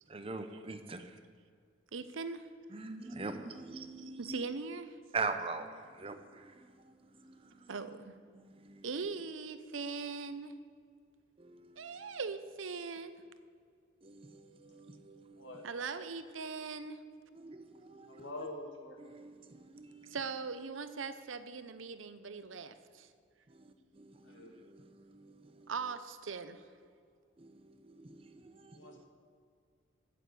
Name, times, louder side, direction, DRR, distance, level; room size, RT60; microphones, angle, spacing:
voice 1, 0.1-1.0 2.7-4.4 5.1-7.7 8.3-8.8 11.4-12.1 14.0-15.5 17.3-18.2 19.0-20.2 23.5-25.7 27.4-29.0, right 3 dB, 30° right, 8 dB, 0.8 m, -44 dB
voice 2, 1.9-2.5 4.0-5.0 7.7-8.1 8.8-10.6 11.8-13.2 15.6-17.0 20.1-23.1 25.7-26.6, right 4 dB, 85° right, 12 dB, 0.7 m, -40 dB
voice 3, 15.3-15.6 18.1-19.1 24.2-24.5 28.7-29.0, left 1 dB, 75° left, 2 dB, 2.1 m, -46 dB
9.0 x 8.5 x 8.4 m, 2.1 s
head